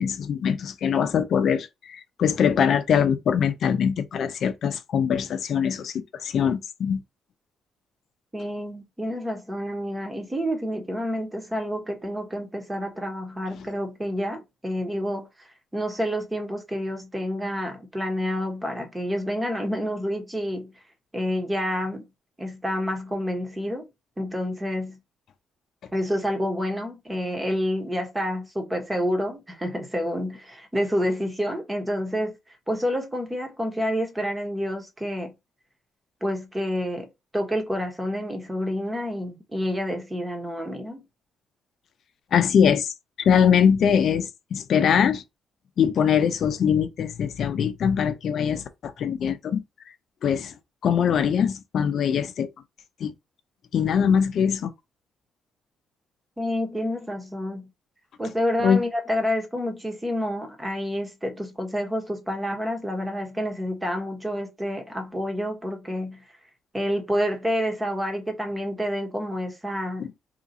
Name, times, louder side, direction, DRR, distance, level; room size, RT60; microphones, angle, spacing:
voice 1, 0.0-7.0 42.3-45.2 45.8-49.6 50.2-50.5 50.8-52.5 53.0-53.1 53.7-54.7 58.6-58.8 70.0-70.1, left 7 dB, 65° left, 0.6 m, -22 dB
voice 2, 8.3-20.7 21.1-22.1 22.4-23.9 24.2-25.0 25.9-32.4 32.7-35.3 36.2-37.1 37.3-41.0 56.4-57.7 58.2-66.2 66.7-70.1, equal, 15° right, 1.2 m, -28 dB
2.8 x 2.6 x 4.0 m
cardioid pair, 90°, 0 cm